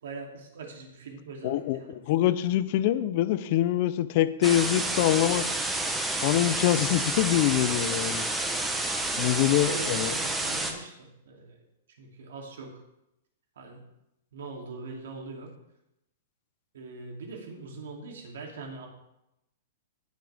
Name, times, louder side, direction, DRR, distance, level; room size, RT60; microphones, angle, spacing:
voice 1, 0.0-2.0 9.2-11.6 12.0-12.8 13.6-13.8 14.3-15.5 16.7-18.9, right 3 dB, 80° right, 1 dB, 2.8 m, -42 dB
voice 2, 1.4-1.8 2.1-5.4 6.2-8.3 9.2-10.1, left 13 dB, 40° left, 14 dB, 0.6 m, -24 dB
sound 1, 4.4-10.7, right 2 dB, 5° right, 0.9 m, -29 dB
17.5 x 6.6 x 3.5 m, 0.85 s
hypercardioid pair, 170°, 0 cm